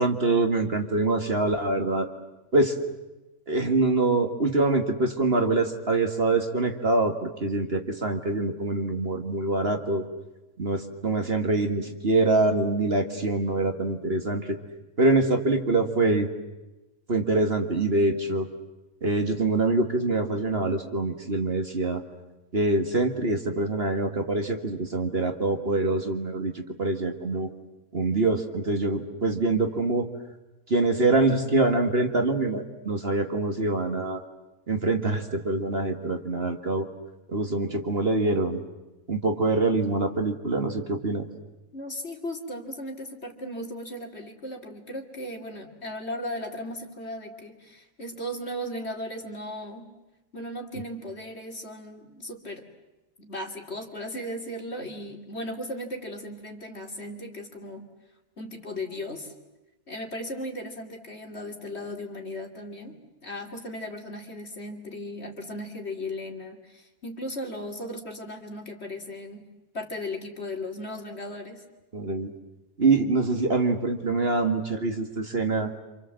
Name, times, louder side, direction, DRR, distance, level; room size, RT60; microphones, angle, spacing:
voice 1, 0.0-2.1 2.5-2.8 3.5-10.1 10.6-14.6 15.0-16.3 17.1-18.5 19.0-22.0 22.5-27.5 27.9-30.1 30.7-34.2 34.7-36.9 37.3-38.6 39.1-41.3 71.9-72.3 72.8-75.7, right 2 dB, 40° right, 5 dB, 2.1 m, -25 dB
voice 2, 41.7-49.9 50.3-52.6 53.2-57.9 58.4-59.3 59.9-69.5 69.7-71.6, left 1 dB, 45° left, 3 dB, 3.1 m, -36 dB
27.5 x 27.5 x 7.7 m, 1.0 s
omnidirectional pair, 1.6 m